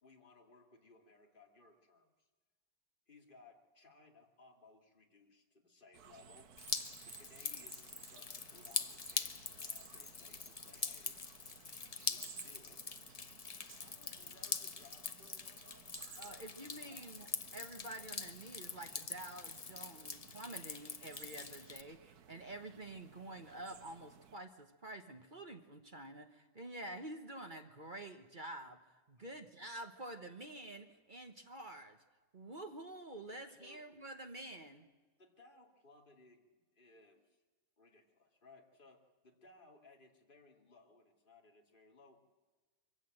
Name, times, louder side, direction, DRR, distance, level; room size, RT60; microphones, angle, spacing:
voice 1, 0.0-2.3 3.1-6.5 7.0-11.2 12.1-12.8 13.8-15.9 16.9-17.3 29.2-29.4 33.5-33.8 35.2-37.4 37.8-42.2, left 3 dB, 30° left, 2 dB, 2.5 m, -63 dB
sound 1, 5.9-24.4, right 8 dB, 65° right, 1.4 m, -58 dB
Drip, 6.6-21.8, left 5 dB, 85° left, 0.3 m, -44 dB
voice 2, 16.2-32.0 32.3-34.9, right 1 dB, 30° right, 6 dB, 1.1 m, -49 dB
23.0 x 16.0 x 7.8 m, 1.3 s
omnidirectional pair, 1.9 m